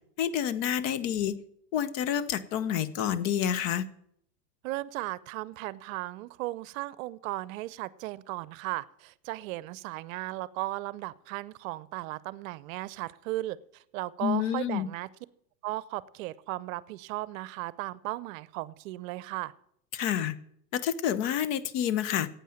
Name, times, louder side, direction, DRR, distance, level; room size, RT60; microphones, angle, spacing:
voice 1, 0.2-1.4 1.7-3.9 14.2-14.9 19.9-20.3 20.7-22.3, left 9 dB, 50° left, 15 dB, 1.0 m, -28 dB
voice 2, 4.6-15.1 15.6-19.5, right 17 dB, 55° right, 19 dB, 0.7 m, -36 dB
9.2 x 8.5 x 8.8 m, 0.71 s
hypercardioid pair, 110°, 49 cm